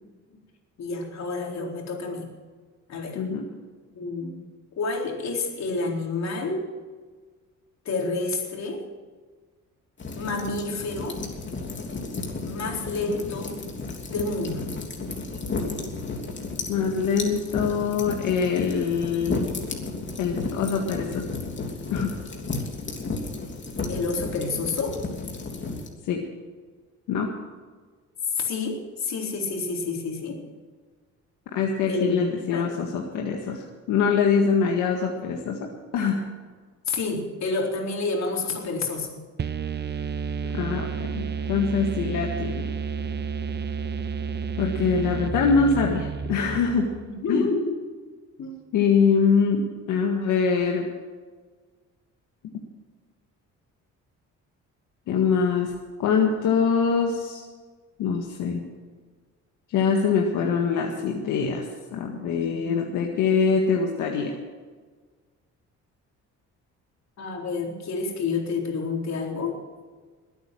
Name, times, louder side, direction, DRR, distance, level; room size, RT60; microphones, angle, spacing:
voice 1, 0.8-2.3 2.9-3.2 4.0-4.4 4.8-6.7 7.8-8.8 10.1-11.2 12.4-13.6 14.1-14.6 23.9-25.0 28.3-30.4 31.9-32.7 36.9-39.2 47.1-47.8 48.4-48.5 67.2-69.6, left 3 dB, 65° left, 0 dB, 4.2 m, -29 dB
voice 2, 3.1-3.4 16.7-19.5 20.2-21.2 21.9-22.1 26.0-26.2 27.1-27.3 31.5-36.3 40.5-42.7 44.6-46.9 47.3-47.5 48.7-50.9 55.1-55.7 56.0-57.4 58.0-58.6 59.7-64.4, left 5 dB, 90° left, 1 dB, 1.8 m, -24 dB
sound 1, 10.0-25.9, left 3 dB, 40° left, 3.2 m, -33 dB
sound 2, 39.4-47.1, right 5 dB, 35° right, 0.9 m, -31 dB
21.5 x 9.2 x 6.3 m, 1.4 s
cardioid pair, 90°, 30 cm